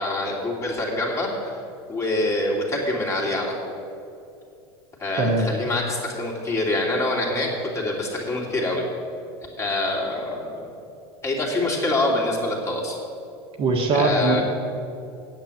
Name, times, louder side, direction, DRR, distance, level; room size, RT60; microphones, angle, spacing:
voice 1, 0.0-1.6 1.9-3.7 5.0-7.5 7.7-8.8 9.6-10.7 11.2-13.0 13.9-14.4, left 2 dB, 20° left, -2 dB, 2.8 m, -25 dB
voice 2, 5.2-5.5 13.6-14.4, right 3 dB, 45° right, 1 dB, 1.8 m, -21 dB
9.0 x 7.5 x 8.9 m, 2.6 s
supercardioid pair, 115°, 13 cm